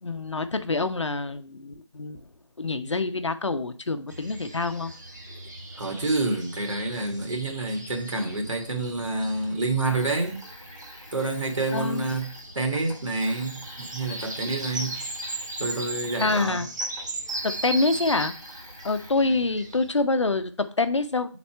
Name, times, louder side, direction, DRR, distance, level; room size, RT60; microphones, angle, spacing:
voice 1, 0.0-2.2 2.6-4.9 11.7-12.1 16.2-16.7 17.4-18.3 18.8-21.4, left 3 dB, 65° left, 0.8 m, -26 dB
sound 1, 4.1-19.9, right 2 dB, 35° right, 1.0 m, -38 dB
voice 2, 5.8-10.4 11.1-12.3 12.6-15.0 15.6-16.7 19.2-19.3, right 2 dB, 80° right, 2.0 m, -28 dB
sound 2, 9.8-16.5 16.7-19.1, left 1 dB, 5° left, 0.7 m, -48 dB
5.7 x 4.2 x 4.4 m
figure-of-eight pair, 175°, 16 cm